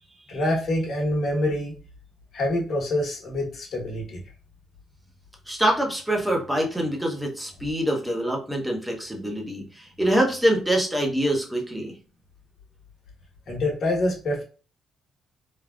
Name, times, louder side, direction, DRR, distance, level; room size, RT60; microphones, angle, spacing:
voice 1, 0.3-1.8 2.3-4.2 13.5-14.4, left 1 dB, 55° left, -1 dB, 1.2 m, -26 dB
voice 2, 5.5-11.9, right 1 dB, 5° right, 0 dB, 0.9 m, -25 dB
3.5 x 2.3 x 2.4 m, 0.38 s
cardioid pair, 90°, 0 cm